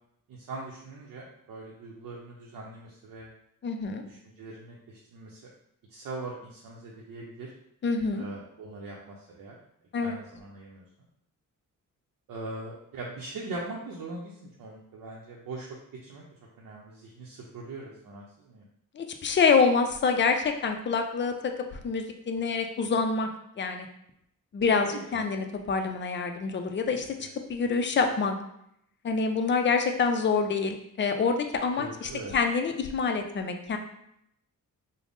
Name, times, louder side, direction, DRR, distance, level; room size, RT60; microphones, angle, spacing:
voice 1, 0.3-3.3 4.1-5.4 5.9-7.5 8.1-9.6 10.0-10.8 12.3-16.2 16.6-18.7 24.9-25.2 26.9-27.3 31.8-32.4, right 2 dB, 75° right, -3 dB, 0.6 m, -41 dB
voice 2, 3.6-4.0 7.8-8.2 9.9-10.2 19.0-21.5 21.8-23.3 23.6-23.9 24.5-27.1 27.5-28.4 29.0-33.8, left 5 dB, 35° left, 5 dB, 0.4 m, -26 dB
3.4 x 2.0 x 3.8 m, 0.75 s
cardioid pair, 100°, 33 cm